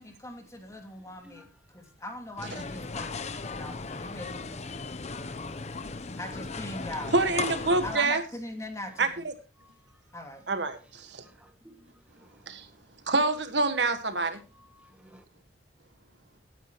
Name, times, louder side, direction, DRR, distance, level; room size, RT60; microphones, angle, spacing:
voice 1, 0.0-1.5 1.7-4.8 6.2-7.1 7.8-9.2 10.1-10.5, left 1 dB, 20° left, 2.4 m, -41 dB
sound 1, 2.4-8.0, left 4 dB, 40° left, 0.8 m, -36 dB
voice 2, 7.1-8.2 9.0-9.3 10.5-11.2 12.5-12.7 13.1-14.4, right 3 dB, 80° right, 1.5 m, -26 dB
voice 3, 9.6-10.0 11.2-12.4 14.3-15.2, equal, 5° right, 1.8 m, -55 dB
17.0 x 9.3 x 3.0 m
head